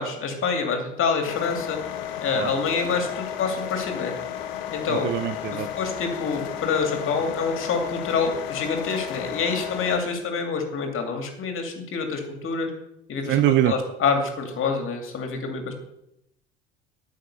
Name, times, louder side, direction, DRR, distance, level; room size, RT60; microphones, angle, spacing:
voice 1, 0.0-1.8 2.2-4.1 4.7-5.1 5.5-12.7 13.1-15.7, left 5 dB, 40° left, 4 dB, 2.5 m, -27 dB
sound 1, 1.2-10.0, left 10 dB, 65° left, 1.2 m, -33 dB
voice 2, 4.9-5.7 13.2-13.7, right 14 dB, 35° right, 13 dB, 0.5 m, -23 dB
9.1 x 6.6 x 7.0 m, 0.80 s
figure-of-eight pair, 65°, 32 cm